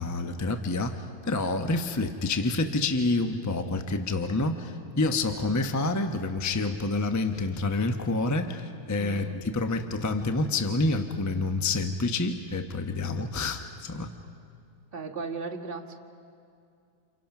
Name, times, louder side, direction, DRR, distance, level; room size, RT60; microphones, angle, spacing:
voice 1, 0.0-9.3 9.5-14.1, left 2 dB, 25° left, 6 dB, 0.4 m, -28 dB
voice 2, 5.3-5.7 9.0-9.4 13.0-13.3 14.9-15.9, right 4 dB, 30° right, 0 dB, 1.7 m, -37 dB
29.5 x 28.5 x 6.0 m, 2.4 s
omnidirectional pair, 2.3 m